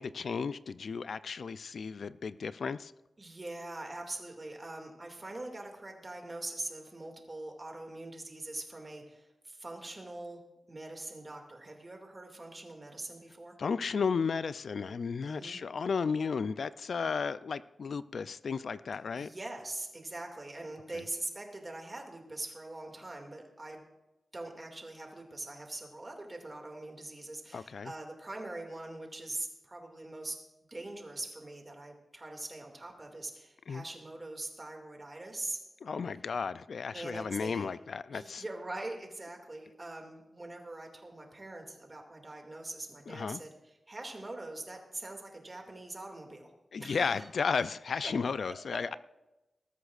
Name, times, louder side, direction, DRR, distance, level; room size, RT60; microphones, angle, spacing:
voice 1, 0.0-2.9 13.6-19.3 27.5-27.9 33.7-33.8 35.8-38.4 43.1-43.4 46.7-49.0, left 5 dB, 65° left, 15 dB, 0.3 m, -34 dB
voice 2, 3.2-10.4 10.7-13.6 15.2-15.6 19.2-23.9 24.3-30.4 30.7-35.6 36.9-37.7 38.1-46.5 46.8-47.3, right 2 dB, 25° right, 2 dB, 2.2 m, -43 dB
20.0 x 13.0 x 2.5 m, 1.0 s
wide cardioid pair, 125°, 0 cm